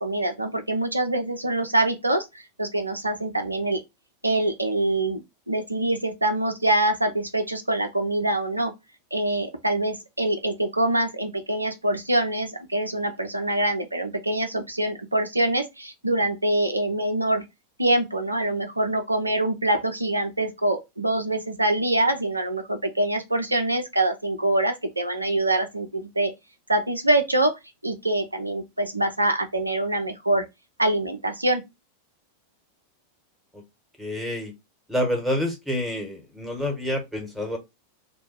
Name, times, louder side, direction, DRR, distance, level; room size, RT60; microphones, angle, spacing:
voice 1, 0.0-2.3 2.6-3.8 4.2-8.7 9.1-17.4 17.8-26.3 26.7-27.5 27.8-30.4 30.8-31.6, right 1 dB, 85° right, 0.6 m, -24 dB
voice 2, 34.0-34.5 34.9-37.6, left 1 dB, 5° right, 1.3 m, -28 dB
3.4 x 2.2 x 4.4 m
figure-of-eight pair, 90°, 0 cm